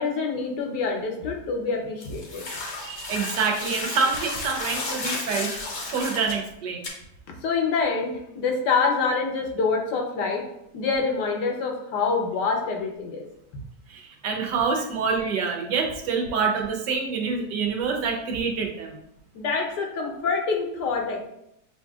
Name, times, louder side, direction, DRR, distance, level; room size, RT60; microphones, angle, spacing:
voice 1, 0.0-2.4 7.4-10.4 10.7-13.2 19.3-21.3, left 4 dB, 80° left, 2 dB, 1.4 m, -26 dB
sound 1, 2.0-6.4 6.8-6.9, left 2 dB, 50° left, 0.9 m, -33 dB
voice 2, 2.8-5.7 5.9-6.9 13.9-19.0, right 5 dB, 85° right, 2 dB, 1.4 m, -26 dB
6.7 x 2.7 x 2.3 m, 0.79 s
omnidirectional pair, 1.8 m